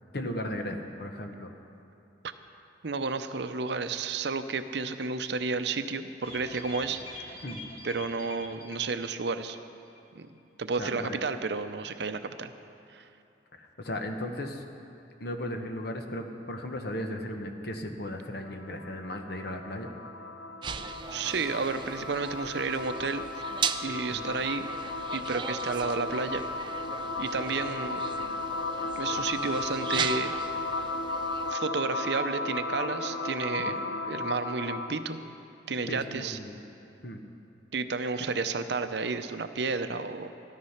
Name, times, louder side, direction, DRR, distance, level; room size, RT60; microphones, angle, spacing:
voice 1, 0.1-1.5 7.4-7.6 10.8-11.2 13.6-14.6 15.2-19.9 24.1-24.2 33.6-33.8 35.9-36.6 37.0-37.2, left 1 dB, 60° left, 5 dB, 1.1 m, -36 dB
voice 2, 2.8-7.4 7.8-9.6 10.2-10.3 10.6-12.5 12.9-13.1 21.1-23.2 23.8-24.7 25.1-26.6 27.2-28.0 29.0-30.4 31.5-35.2 35.7-36.4 37.7-40.3, right 4 dB, 60° right, 9 dB, 0.6 m, -32 dB
sound 1, 6.2-9.7 10.0-10.1 10.4-10.5, left 2 dB, 30° left, 1.5 m, -45 dB
sound 2, 18.4-35.1, left 2 dB, 90° left, 1.0 m, -35 dB
sound 3, 20.6-31.5, right 6 dB, 25° right, 0.4 m, -38 dB
13.5 x 13.0 x 5.8 m, 2.8 s
head